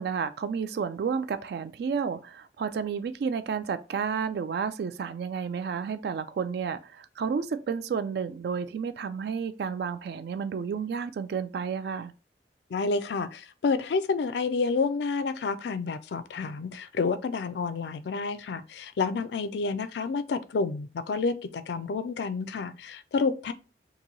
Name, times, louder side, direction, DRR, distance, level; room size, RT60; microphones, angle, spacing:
voice 1, 0.0-12.1, right 6 dB, 60° right, 0.3 m, -31 dB
voice 2, 12.7-23.5, left 4 dB, 70° left, 0.4 m, -29 dB
2.9 x 2.6 x 3.8 m
head